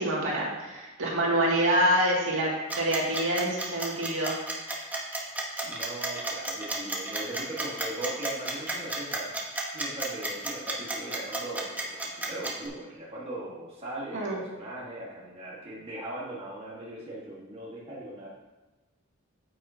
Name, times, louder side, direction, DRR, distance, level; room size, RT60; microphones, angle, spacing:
voice 1, 0.0-4.3 14.1-14.4, right 1 dB, 65° right, -4 dB, 2.2 m, -26 dB
sound 1, 2.7-12.7, right 2 dB, 10° right, 1.0 m, -32 dB
voice 2, 5.6-9.3 9.7-18.3, right 1 dB, 30° right, -6 dB, 1.6 m, -39 dB
9.0 x 7.8 x 2.8 m, 1.1 s
head